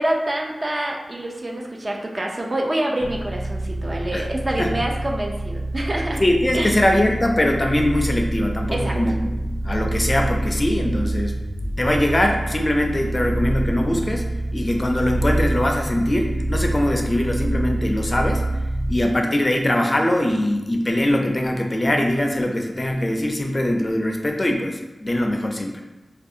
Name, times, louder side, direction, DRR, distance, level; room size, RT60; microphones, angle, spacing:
voice 1, 0.0-6.2 6.5-6.8 8.7-9.0, right 1 dB, 40° right, 0 dB, 0.4 m, -26 dB
sound 1, 3.0-19.1, right 1 dB, 70° right, 1.0 m, -26 dB
voice 2, 6.2-14.2 14.5-18.4 18.9-25.8, left 1 dB, 30° left, 2 dB, 0.4 m, -22 dB
2.5 x 2.3 x 2.6 m, 1.0 s
wide cardioid pair, 65°, 0 cm